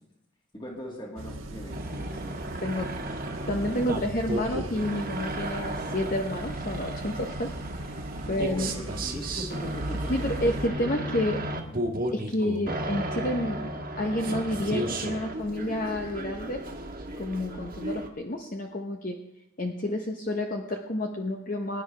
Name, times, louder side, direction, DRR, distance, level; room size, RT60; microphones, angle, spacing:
voice 1, 0.5-2.4 8.2-10.1 10.6-11.5 11.8-12.0, equal, 20° left, -1 dB, 2.0 m, -40 dB
sound 1, 1.2-10.7, right 1 dB, 85° right, 1.3 m, -38 dB
sound 2, 1.7-18.1, right 1 dB, 45° right, 1.5 m, -34 dB
voice 2, 3.5-7.5 7.8-7.9 8.3-9.0 10.1-11.4 12.1-16.6 17.2-19.2 19.6-21.8, left 1 dB, 40° left, 3 dB, 0.8 m, -30 dB
21.5 x 10.0 x 3.3 m, 0.85 s
head